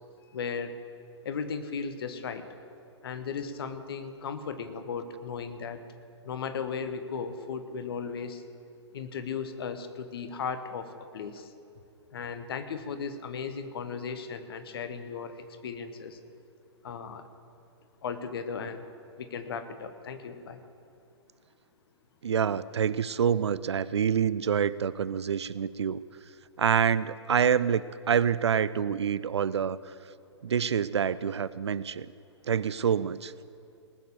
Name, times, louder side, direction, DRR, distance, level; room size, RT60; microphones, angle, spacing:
voice 1, 0.3-0.8 1.2-2.5 3.0-5.8 6.2-8.4 8.9-11.5 12.1-16.2 16.8-17.3 18.0-18.9 19.2-20.6, left 6 dB, 55° left, 9 dB, 1.1 m, -36 dB
voice 2, 22.2-26.0 26.6-27.8 28.1-29.8 30.4-32.1 32.5-33.3, right 7 dB, 70° right, 18 dB, 0.4 m, -26 dB
19.0 x 6.7 x 6.9 m, 2.5 s
figure-of-eight pair, 115°, 15 cm